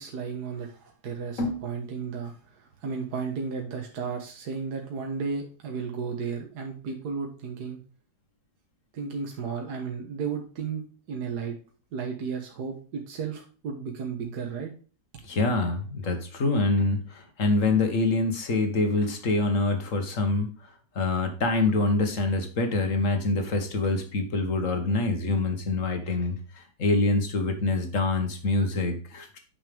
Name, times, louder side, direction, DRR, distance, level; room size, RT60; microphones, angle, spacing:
voice 1, 0.0-7.8 8.9-11.6 11.9-14.7, right 5 dB, 65° right, 2 dB, 1.9 m, -34 dB
voice 2, 15.2-20.7 21.0-29.4, left 3 dB, 45° left, 6 dB, 1.9 m, -25 dB
9.2 x 6.2 x 3.5 m, 0.38 s
omnidirectional pair, 1.9 m